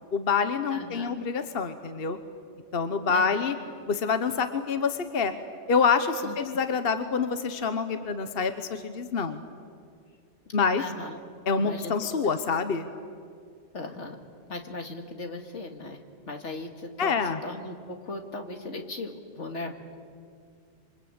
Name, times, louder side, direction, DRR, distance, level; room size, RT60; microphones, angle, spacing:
voice 1, 0.1-2.2 2.7-3.5 3.9-5.3 5.7-9.4 10.5-10.8 11.5-12.9 17.0-17.4, left 5 dB, 55° left, 9 dB, 1.2 m, -26 dB
voice 2, 0.7-1.1 3.1-3.4 6.2-6.4 10.8-11.2 11.5-12.0 13.7-14.2 14.5-19.8, left 2 dB, 80° left, 5 dB, 2.4 m, -38 dB
27.0 x 25.0 x 8.7 m, 2.2 s
omnidirectional pair, 1.2 m